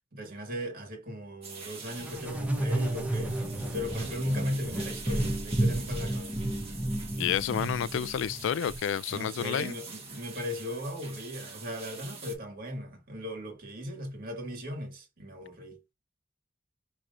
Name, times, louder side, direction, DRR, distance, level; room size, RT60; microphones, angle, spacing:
voice 1, 0.1-3.4 3.7-6.4 9.1-15.8, left 1 dB, 50° right, 1.9 m, -37 dB
sound 1, 1.4-12.4, right 4 dB, 30° right, 1.7 m, -45 dB
sound 2, 2.0-8.8, right 1 dB, 10° right, 1.0 m, -32 dB
voice 2, 7.2-9.8, left 9 dB, 70° left, 0.3 m, -30 dB
5.8 x 3.2 x 2.5 m
head